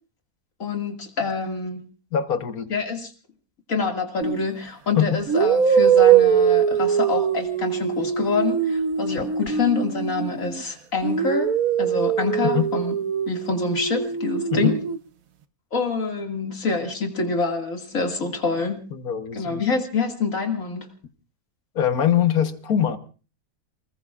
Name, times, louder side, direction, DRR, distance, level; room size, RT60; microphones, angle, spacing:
voice 1, 0.6-1.8 2.7-3.1 3.7-12.9 13.3-14.8 15.7-18.8 19.4-20.9, left 4 dB, 65° left, 2.7 m, -26 dB
voice 2, 2.1-2.7 5.0-5.2 12.5-12.7 14.5-14.7 18.9-19.6 21.7-23.0, left 9 dB, 80° left, 1.7 m, -22 dB
sound 1, 4.2-4.5 5.3-10.6 11.0-15.0, right 8 dB, 70° right, 1.4 m, -22 dB
29.5 x 20.0 x 2.5 m
omnidirectional pair, 1.5 m